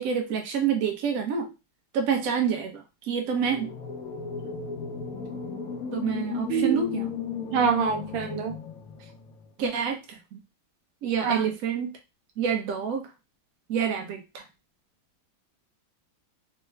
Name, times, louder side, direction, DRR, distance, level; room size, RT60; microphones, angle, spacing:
voice 1, 0.0-1.5 1.9-3.7 5.9-7.1 9.6-10.4 11.0-12.0 12.4-13.1 13.7-14.4, right 7 dB, 60° right, 3 dB, 1.0 m, -28 dB
sound 1, 3.4-9.5, left 6 dB, 85° left, 0.7 m, -35 dB
voice 2, 7.5-8.6 11.2-11.4, right 6 dB, 85° right, 4 dB, 1.5 m, -25 dB
3.5 x 2.1 x 3.2 m, 0.26 s
omnidirectional pair, 2.2 m